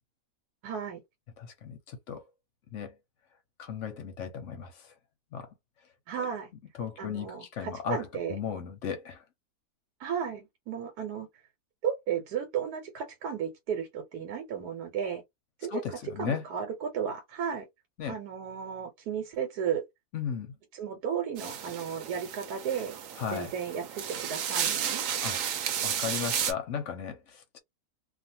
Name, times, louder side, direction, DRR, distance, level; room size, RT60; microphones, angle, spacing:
voice 1, 0.6-1.0 6.1-6.5 7.0-8.4 10.0-11.3 11.8-15.2 15.6-15.8 16.2-17.7 18.1-19.8 20.7-23.0 23.3-25.0, right 8 dB, 85° right, 1.3 m, -34 dB
voice 2, 1.4-2.3 2.7-2.9 3.6-4.9 5.3-5.5 6.8-9.2 15.7-16.4 18.0-18.1 20.1-20.5 23.2-23.5 25.2-25.4 25.8-27.6, left 7 dB, 65° left, 0.8 m, -36 dB
sound 1, 21.4-26.5, right 8 dB, 65° right, 0.9 m, -33 dB
2.4 x 2.4 x 2.7 m
omnidirectional pair, 1.6 m